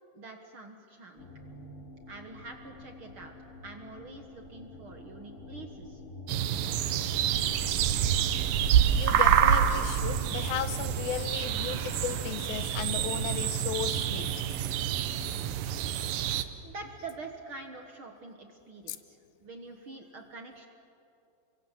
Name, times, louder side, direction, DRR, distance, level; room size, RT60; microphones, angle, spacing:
voice 1, 0.1-1.3 2.1-3.3 3.6-6.0 16.6-20.7, right 3 dB, 50° right, 4 dB, 1.7 m, -45 dB
sound 1, 1.2-15.3, left 2 dB, 20° left, 4.0 m, -46 dB
sound 2, 6.3-16.4, right 9 dB, 75° right, 2.5 m, -27 dB
voice 2, 9.0-14.3 18.9-19.0, left 10 dB, 85° left, 12 dB, 2.8 m, -35 dB
29.0 x 24.0 x 7.5 m, 2.7 s
omnidirectional pair, 4.1 m